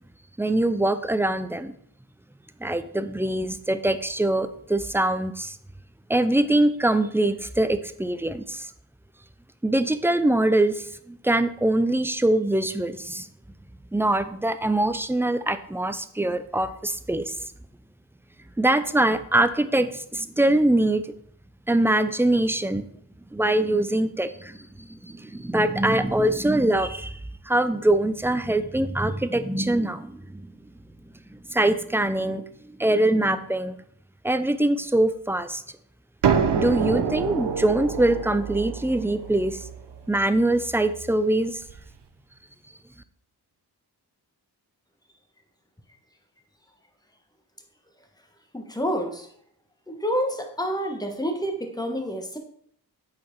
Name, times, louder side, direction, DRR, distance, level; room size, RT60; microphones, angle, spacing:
voice 1, 0.4-1.7 2.6-5.6 6.1-8.7 9.6-13.3 13.9-17.3 18.6-21.1 21.7-22.9 23.3-27.2 27.4-30.4 31.3-32.4 32.8-33.8 34.2-35.6 36.5-39.7 40.1-41.6, right 1 dB, 5° right, 11 dB, 0.5 m, -23 dB
sound 1, 36.2-41.8, right 6 dB, 85° right, 0.9 m, -27 dB
voice 2, 48.5-49.3 49.9-52.4, equal, 10° left, 4 dB, 1.4 m, -28 dB
8.4 x 4.7 x 4.6 m, 0.66 s
wide cardioid pair, 75°, 40 cm